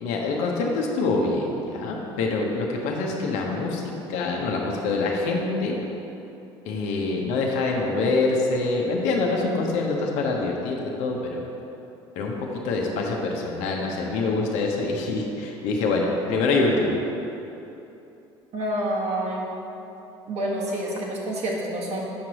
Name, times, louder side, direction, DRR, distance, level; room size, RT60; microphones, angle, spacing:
voice 1, 0.0-5.8 6.6-11.4 12.2-17.0, left 3 dB, 65° left, 0 dB, 0.9 m, -25 dB
voice 2, 18.5-19.4 20.3-22.0, right 1 dB, 55° right, -3 dB, 1.6 m, -28 dB
8.4 x 6.1 x 3.0 m, 3.0 s
hypercardioid pair, 65°, 13 cm